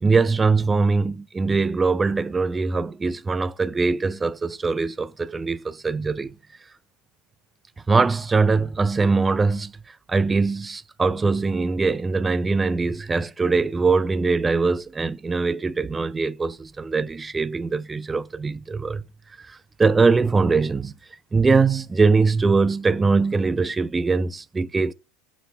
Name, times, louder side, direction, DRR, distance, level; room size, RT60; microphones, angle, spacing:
voice 1, 0.0-6.3 7.9-19.0 19.4-20.9 21.3-24.9, right 4 dB, 15° right, 0.4 m, -22 dB
8.0 x 4.1 x 4.5 m
supercardioid pair, 120°, 0 cm